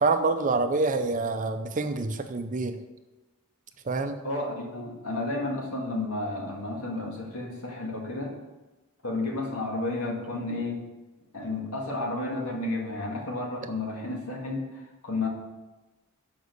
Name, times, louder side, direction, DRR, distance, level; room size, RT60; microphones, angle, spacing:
voice 1, 0.0-2.8 3.8-4.2, right 3 dB, 35° right, 8 dB, 0.6 m, -26 dB
voice 2, 4.2-8.4 9.0-10.8 11.3-15.3, left 2 dB, 75° left, -1 dB, 1.9 m, -32 dB
7.0 x 5.1 x 6.6 m, 1.1 s
head